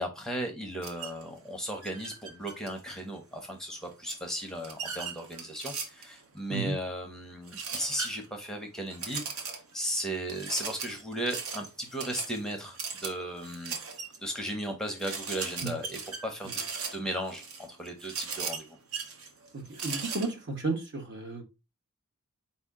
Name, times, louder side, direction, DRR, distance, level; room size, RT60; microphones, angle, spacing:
voice 1, 0.0-13.8 14.2-16.6 16.9-18.8, right 1 dB, 5° left, 0.6 m, -36 dB
sound 1, 0.8-1.2 1.8-3.0 4.1-6.2 7.5-8.4 8.9-9.8 10.3-14.2 14.6-14.7 15.0-20.3, right 5 dB, 70° right, 0.8 m, -38 dB
voice 2, 19.5-21.4, right 3 dB, 55° right, 1.1 m, -33 dB
4.3 x 2.7 x 3.5 m
head